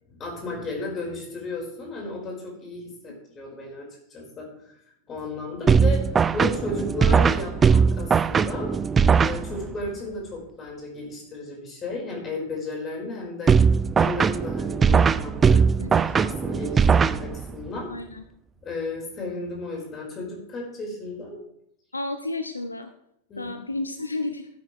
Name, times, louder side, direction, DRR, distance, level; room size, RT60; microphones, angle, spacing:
voice 1, 0.1-4.8 5.1-8.8 9.2-13.6 14.0-15.6 15.9-17.9 18.6-21.4 23.3-23.5, left 2 dB, 25° left, -1 dB, 4.6 m, -34 dB
sound 1, 5.7-9.9 13.5-17.7, right 6 dB, 20° right, 0.4 m, -20 dB
voice 2, 17.9-18.2 21.9-22.9 23.4-24.5, left 2 dB, 80° left, 9 dB, 0.7 m, -32 dB
16.0 x 9.1 x 3.2 m, 0.74 s
figure-of-eight pair, 90°, 0 cm